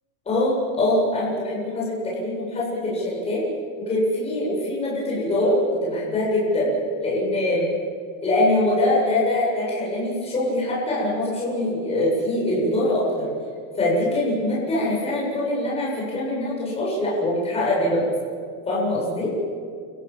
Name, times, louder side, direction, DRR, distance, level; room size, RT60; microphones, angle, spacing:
voice 1, 0.3-3.4 3.9-6.7 7.0-7.7 8.2-13.3 13.8-18.1 18.7-19.3, left 1 dB, 15° left, -5 dB, 7.7 m, -23 dB
30.0 x 16.0 x 7.7 m, 2.1 s
cardioid pair, 180°, 37 cm